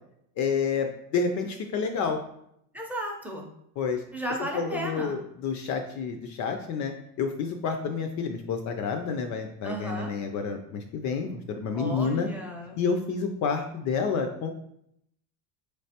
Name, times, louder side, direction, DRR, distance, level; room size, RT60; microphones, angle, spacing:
voice 1, 0.4-2.2 3.8-4.0 4.5-12.3 12.8-14.5, left 5 dB, 45° left, 5 dB, 0.4 m, -29 dB
voice 2, 2.7-3.5 4.1-5.2 9.6-10.1 11.7-12.8, right 1 dB, 5° right, 0 dB, 0.6 m, -34 dB
4.3 x 3.3 x 2.8 m, 0.73 s
cardioid pair, 130°, 44 cm